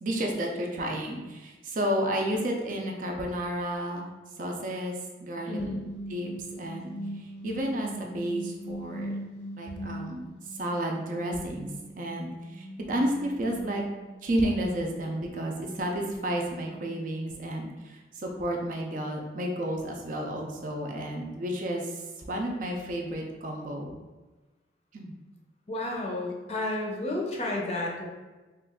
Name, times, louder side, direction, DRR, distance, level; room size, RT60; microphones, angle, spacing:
voice 1, 0.0-4.1 4.4-5.6 6.1-6.3 6.6-9.1 9.6-11.7 12.0-13.8 14.2-23.9 24.9-25.1, right 1 dB, 45° right, 1 dB, 0.4 m, -31 dB
sound 1, 5.3-10.5 10.9-17.1, right 1 dB, 85° left, 0.6 m, -42 dB
voice 2, 5.5-5.8 25.7-28.1, left 2 dB, 35° left, -1 dB, 0.5 m, -31 dB
3.0 x 2.3 x 3.5 m, 1.2 s
head